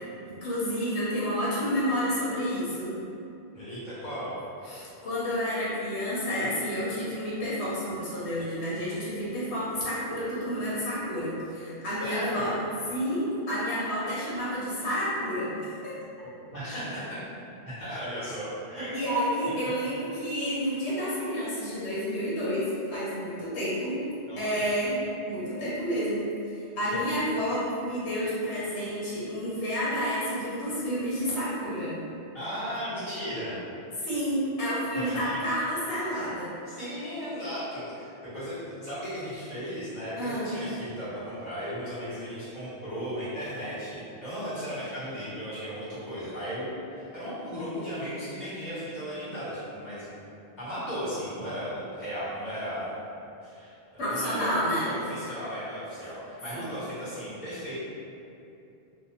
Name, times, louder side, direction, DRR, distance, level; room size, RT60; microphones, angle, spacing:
voice 1, 0.3-3.0 4.6-12.6 12.9-16.0 18.9-24.0 24.4-25.0 25.3-31.9 34.0-36.5 40.2-40.5 54.0-55.0 56.5-56.7, equal, 80° left, -9 dB, 1.1 m, -30 dB
voice 2, 3.5-4.3 12.0-12.5 16.5-17.2 17.6-18.9 24.3-24.7 26.8-27.0 32.3-33.6 34.9-35.4 36.7-50.1 50.6-52.9 53.4-57.7, equal, 45° left, -13 dB, 1.2 m, -36 dB
2.6 x 2.1 x 3.0 m, 2.7 s
omnidirectional pair, 1.1 m